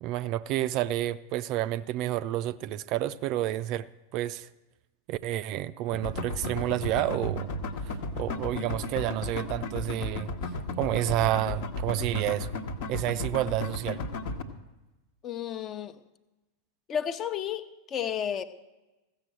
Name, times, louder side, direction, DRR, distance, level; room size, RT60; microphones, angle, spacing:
voice 1, 0.0-4.5 5.1-7.5 7.8-10.3 10.8-12.5 12.9-14.0, right 13 dB, 40° right, 0.4 m, -30 dB
sound 1, 5.9-14.4, left 1 dB, 50° left, 1.2 m, -34 dB
voice 2, 15.2-16.0 16.9-18.4, left 9 dB, 30° left, 0.8 m, -32 dB
15.0 x 6.9 x 7.5 m
figure-of-eight pair, 90°, 0 cm